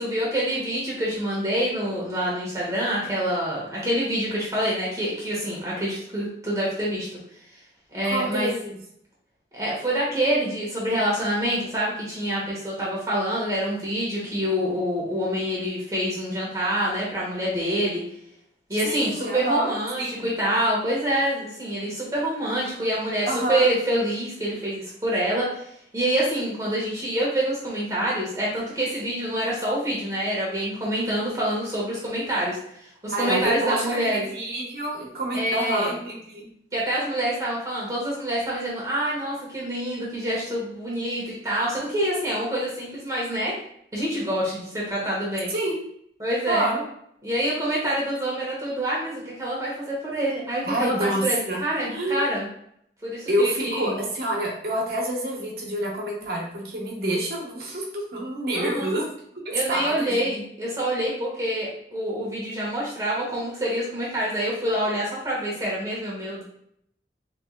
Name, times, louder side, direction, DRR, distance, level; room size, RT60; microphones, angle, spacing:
voice 1, 0.0-7.1 7.9-8.5 9.5-18.0 18.7-34.3 35.3-35.9 36.7-43.5 43.9-45.5 46.2-46.7 47.2-52.5 53.0-54.0 58.5-58.9 59.5-66.4, right 1 dB, 20° right, -5 dB, 0.9 m, -26 dB
voice 2, 8.0-8.8 18.8-19.7 20.0-20.1 23.3-23.6 33.1-36.5 45.5-45.9 46.5-46.8 50.6-51.6 51.9-52.2 53.3-59.0 59.4-60.4, right 1 dB, 55° right, -2 dB, 1.1 m, -27 dB
3.4 x 3.0 x 3.7 m, 0.71 s
head